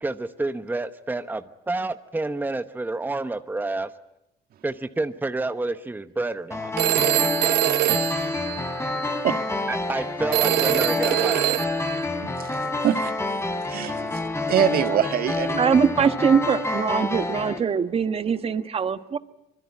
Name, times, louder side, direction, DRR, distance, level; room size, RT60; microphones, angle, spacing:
voice 1, 0.0-3.9 4.6-6.7 9.7-11.7, right 2 dB, 10° right, 10 dB, 1.0 m, -29 dB
sound 1, 6.5-17.6, left 2 dB, 15° left, 3.2 m, -28 dB
Telephone, 6.8-9.1 10.3-12.0, right 17 dB, 80° right, 1.0 m, -24 dB
voice 2, 7.9-8.4 9.2-9.4 12.2-13.1 13.7-15.6, right 10 dB, 65° right, 8 dB, 1.7 m, -25 dB
voice 3, 15.6-19.2, right 6 dB, 35° right, 10 dB, 1.3 m, -22 dB
25.0 x 22.5 x 9.6 m, 0.84 s
cardioid pair, 110°, 17 cm